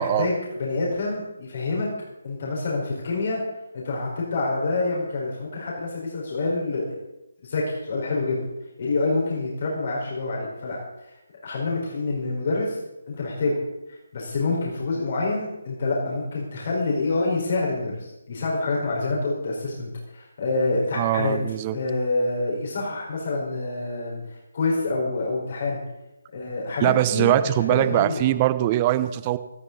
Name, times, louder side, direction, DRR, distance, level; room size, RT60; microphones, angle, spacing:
voice 1, 0.0-1.9 2.2-3.4 3.7-7.0 7.4-8.4 8.8-11.2 11.4-12.8 13.1-13.6 14.1-21.3 21.7-25.8 26.3-28.2, left 3 dB, 45° left, -4 dB, 4.8 m, -27 dB
voice 2, 20.9-21.8 26.8-29.4, right 14 dB, 25° right, 14 dB, 0.8 m, -22 dB
18.0 x 14.0 x 4.1 m, 0.96 s
figure-of-eight pair, 145°, 0 cm